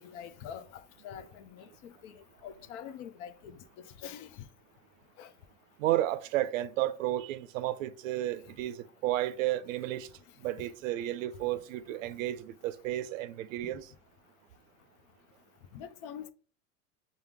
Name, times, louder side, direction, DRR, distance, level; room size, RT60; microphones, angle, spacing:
voice 1, 0.0-2.1 2.4-3.5 4.0-4.3 5.2-5.3 15.7-16.3, left 8 dB, 55° left, 0.6 m, -45 dB
voice 2, 5.8-10.1 10.4-13.9, right 14 dB, 70° right, 0.5 m, -32 dB
5.7 x 2.0 x 3.5 m
hypercardioid pair, 85°, 41 cm